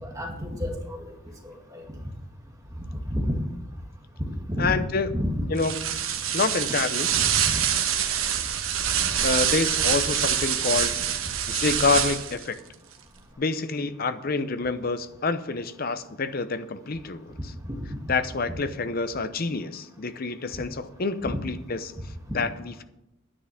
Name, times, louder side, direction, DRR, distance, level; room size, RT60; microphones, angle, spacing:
voice 1, 0.0-1.0 1.7-1.8 3.1-3.4 4.5-4.8 5.1-5.4 7.5-7.6 17.7-17.8 21.3-21.4, equal, 15° right, 0 dB, 2.0 m, -29 dB
voice 2, 4.6-5.1 5.5-6.0 6.3-7.1 9.2-11.0 11.5-12.6 13.4-17.5 18.1-21.9 22.3-22.8, left 4 dB, 45° left, 11 dB, 0.7 m, -27 dB
sound 1, 5.6-12.4, right 9 dB, 80° right, 1.2 m, -25 dB
10.0 x 9.9 x 5.9 m, 0.87 s
head